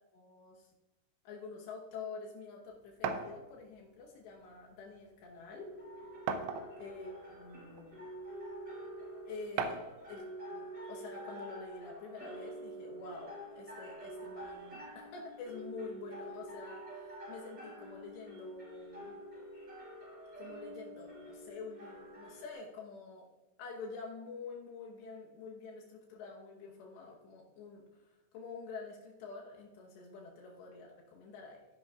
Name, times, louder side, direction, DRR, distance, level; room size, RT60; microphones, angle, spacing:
voice 1, 0.1-0.7 1.2-5.7 6.8-8.0 9.3-9.8 10.1-19.1 20.3-23.3 23.6-27.9 28.3-31.7, left 4 dB, 75° left, -1 dB, 3.3 m, -47 dB
sound 1, 3.0-3.3 4.5-4.6 5.0-5.1 6.3-6.9 7.8-7.9 9.6-10.0, right 6 dB, 80° right, 2.9 m, -35 dB
sound 2, 5.5-22.5, right 1 dB, 25° right, 4.3 m, -47 dB
15.5 x 10.5 x 2.4 m, 1.1 s
omnidirectional pair, 5.2 m